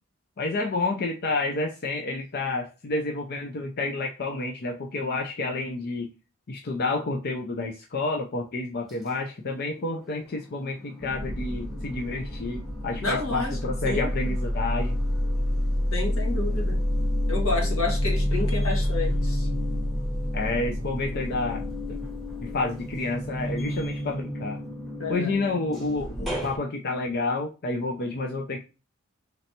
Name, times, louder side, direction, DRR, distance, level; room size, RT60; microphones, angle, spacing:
voice 1, 0.4-6.1 6.5-15.0 20.3-22.0 22.4-24.6 25.1-28.6, left 3 dB, 50° left, 0.5 m, -29 dB
sound 1, 9.5-10.3 10.7-26.6, equal, ahead, 1.0 m, -29 dB
voice 2, 13.0-13.6 13.8-14.3 15.9-16.8 17.3-19.5 25.0-25.3, left 3 dB, 80° left, 1.6 m, -30 dB
3.9 x 3.2 x 2.7 m
head